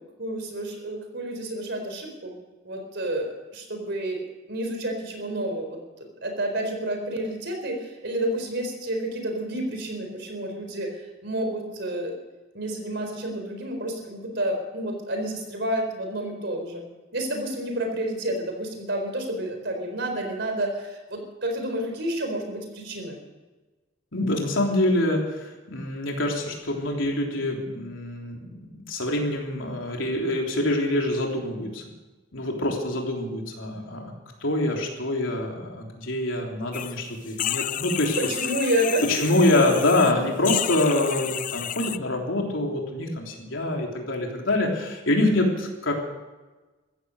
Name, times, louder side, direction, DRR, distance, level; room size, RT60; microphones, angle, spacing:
voice 1, 0.0-2.3 2.6-4.2 4.5-12.1 12.5-16.8 17.1-23.2 38.2-39.2, right 1 dB, 60° right, 4 dB, 4.2 m, -30 dB
voice 2, 24.1-31.8 32.3-34.1 34.4-38.2 39.1-45.9, left 1 dB, 80° left, 0 dB, 3.5 m, -25 dB
sound 1, 36.7-37.0 37.3-40.1 40.4-42.0, left 11 dB, 45° left, 0.4 m, -31 dB
15.0 x 14.0 x 6.6 m, 1.2 s
head